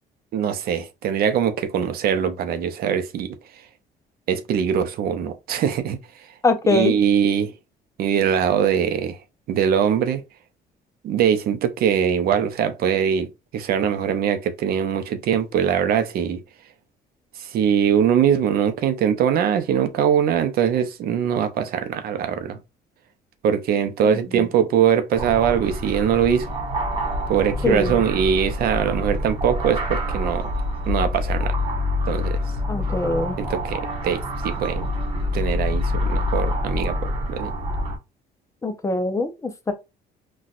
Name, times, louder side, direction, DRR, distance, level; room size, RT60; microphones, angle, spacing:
voice 1, 0.3-3.6 4.3-6.3 6.6-7.5 8.0-9.2 9.5-10.2 11.0-13.3 13.5-16.4 17.4-22.6 23.4-26.5 27.3-30.5 30.9-31.6 32.1-32.4 33.4-34.9 35.3-37.5, right 8 dB, 65° right, 0.6 m, -22 dB
voice 2, 6.4-6.9 24.0-24.2 27.6-28.0 32.7-33.3 38.6-39.7, left 2 dB, 20° left, 0.5 m, -22 dB
sound 1, 25.1-38.0, left 1 dB, 35° right, 1.0 m, -26 dB
4.1 x 2.3 x 2.4 m
cardioid pair, 110°, 17 cm